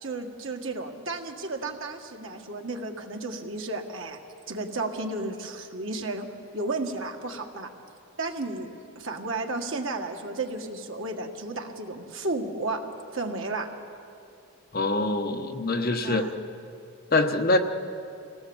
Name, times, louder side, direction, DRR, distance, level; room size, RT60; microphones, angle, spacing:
voice 1, 0.0-4.2 4.5-6.3 6.5-7.7 8.2-12.8 13.1-13.7 16.0-16.3, right 2 dB, 60° right, 3 dB, 1.8 m, -33 dB
voice 2, 14.7-16.3 17.1-17.6, left 2 dB, 40° left, 6 dB, 1.1 m, -24 dB
25.5 x 18.0 x 7.2 m, 2.6 s
head